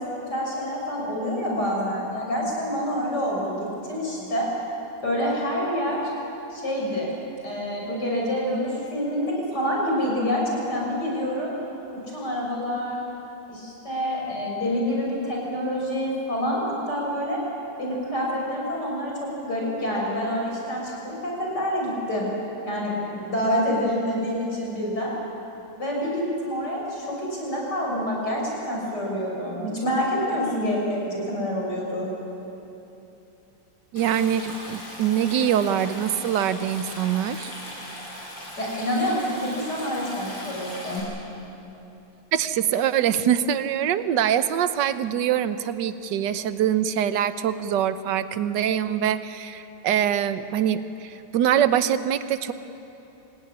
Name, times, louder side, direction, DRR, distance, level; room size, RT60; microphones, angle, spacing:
voice 1, 0.0-4.5 5.0-6.0 6.5-7.1 7.4-11.5 12.1-13.0 13.5-17.4 17.8-19.1 19.4-22.3 22.6-25.1 25.8-32.1 38.6-41.1, equal, 55° left, -2 dB, 7.1 m, -27 dB
voice 2, 33.9-37.5 42.3-52.5, right 9 dB, 65° right, 12 dB, 1.5 m, -24 dB
Stream, 34.0-41.0, left 1 dB, 70° left, 8.8 m, -39 dB
26.5 x 17.5 x 10.0 m, 2.9 s
omnidirectional pair, 2.1 m